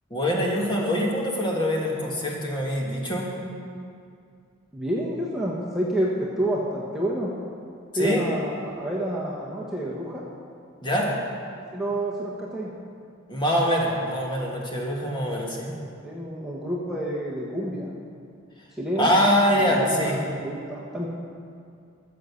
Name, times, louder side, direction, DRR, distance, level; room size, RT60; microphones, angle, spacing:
voice 1, 0.1-3.3 7.9-8.2 10.8-11.1 13.3-15.7 19.0-20.1, equal, 25° left, -2 dB, 1.9 m, -24 dB
voice 2, 4.7-7.3 7.9-10.2 11.7-12.7 16.0-17.9 18.8-19.1 19.5-21.1, right 1 dB, ahead, -6 dB, 1.2 m, -29 dB
14.0 x 6.6 x 7.0 m, 2.4 s
head